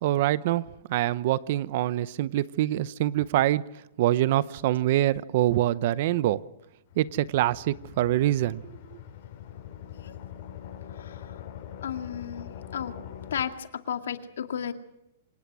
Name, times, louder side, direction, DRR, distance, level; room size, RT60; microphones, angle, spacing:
voice 1, 0.0-3.7 4.0-6.4 7.0-8.7, right 14 dB, 45° right, 0.8 m, -25 dB
sound 1, 6.9-13.4, left 10 dB, 45° left, 7.4 m, -43 dB
voice 2, 10.9-11.4 11.8-12.9 13.3-14.7, left 8 dB, 85° left, 2.2 m, -34 dB
27.0 x 18.5 x 6.2 m
hypercardioid pair, 160°, 0 cm